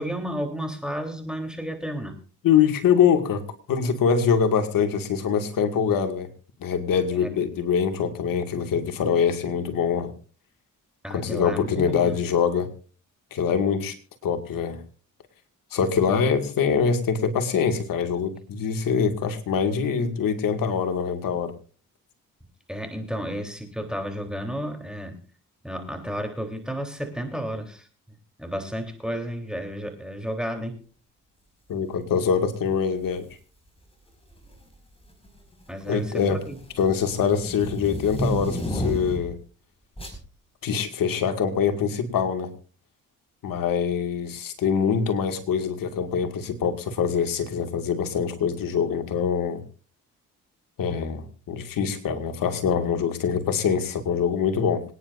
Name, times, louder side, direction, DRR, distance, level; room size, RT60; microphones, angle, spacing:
voice 1, 0.0-2.2 7.1-7.4 11.0-12.2 22.7-25.2 25.6-27.9 28.4-30.8 35.7-36.6, equal, ahead, 4 dB, 3.7 m, -32 dB
voice 2, 2.4-3.4 3.7-6.3 6.6-10.1 11.1-12.7 13.3-13.9 14.2-14.8 15.7-21.5 31.7-33.3 35.9-36.4 36.8-39.4 40.6-42.5 43.4-49.6 50.8-54.8, left 7 dB, 75° left, 6 dB, 2.2 m, -24 dB
sound 1, 33.0-33.3 34.3-34.7 35.1-39.4 40.0-40.2, equal, 15° left, 5.4 m, -32 dB
26.0 x 10.0 x 2.6 m, 0.39 s
supercardioid pair, 60°, 34 cm